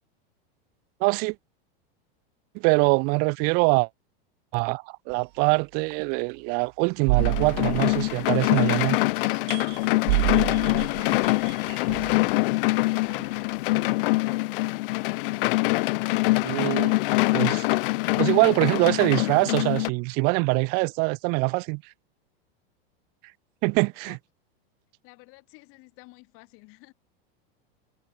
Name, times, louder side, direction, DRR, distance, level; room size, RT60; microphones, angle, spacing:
voice 1, 1.0-1.4 2.5-3.9 4.5-9.0 16.4-17.0 17.3-17.7 18.2-21.8 23.6-24.2, right 33 dB, 30° right, 0.4 m, -23 dB
sound 1, 5.1-5.2 5.9-6.0 7.1-8.7 9.2-12.3 13.1-13.2, right 26 dB, 55° right, 1.1 m, -28 dB
sound 2, 7.2-19.9, left 21 dB, 60° left, 0.7 m, -24 dB
voice 2, 9.6-10.7 24.0-24.2 25.0-26.9, left 26 dB, 45° left, 6.2 m, -52 dB
supercardioid pair, 150°, 31 cm